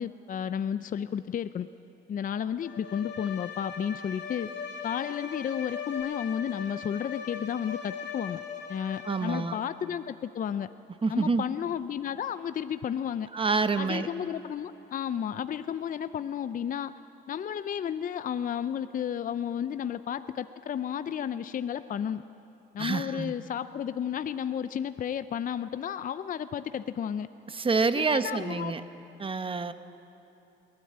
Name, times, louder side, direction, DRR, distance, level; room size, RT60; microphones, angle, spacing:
voice 1, 0.0-1.7 2.1-4.5 4.8-8.4 8.7-10.7 11.1-13.3 13.8-16.9 17.3-22.2 22.7-27.3 27.9-28.7, left 8 dB, 45° left, 12 dB, 0.5 m, -32 dB
Bowed string instrument, 2.6-9.7, left 7 dB, 70° left, 3.7 m, -39 dB
voice 2, 9.0-9.6 11.0-11.5 13.3-14.1 22.8-23.3 27.5-28.8 29.2-29.7, right 4 dB, 25° right, 11 dB, 0.9 m, -27 dB
22.0 x 16.0 x 8.6 m, 2.9 s
cardioid pair, 90°, 20 cm